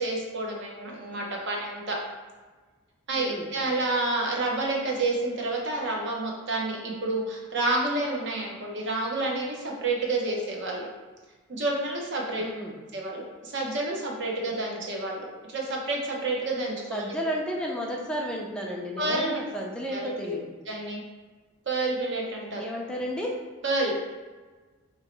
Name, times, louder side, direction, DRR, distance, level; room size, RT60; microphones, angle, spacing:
voice 1, 0.0-2.0 3.1-10.9 11.5-12.4 12.9-17.2 19.0-19.4 19.9-20.3 20.7-21.0 21.7-22.7 23.6-24.0, right 2 dB, 55° right, -2 dB, 0.7 m, -29 dB
voice 2, 3.2-3.5 12.4-12.8 16.9-20.5 22.6-23.4, equal, 5° left, -2 dB, 0.4 m, -32 dB
3.0 x 2.7 x 4.3 m, 1.3 s
head